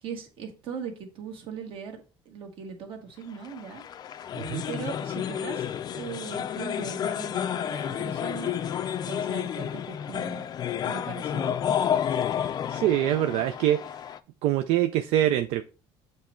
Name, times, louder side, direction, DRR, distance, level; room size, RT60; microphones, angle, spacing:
voice 1, 0.0-3.8 4.6-5.7 5.9-10.4 10.8-11.6, right 6 dB, 55° right, 1.6 m, -39 dB
sound 1, 3.4-14.2, left 9 dB, 40° left, 0.4 m, -31 dB
voice 2, 12.4-13.8 14.4-15.6, right 12 dB, 75° right, 0.4 m, -24 dB
7.3 x 3.2 x 4.3 m
cardioid pair, 130°, 11 cm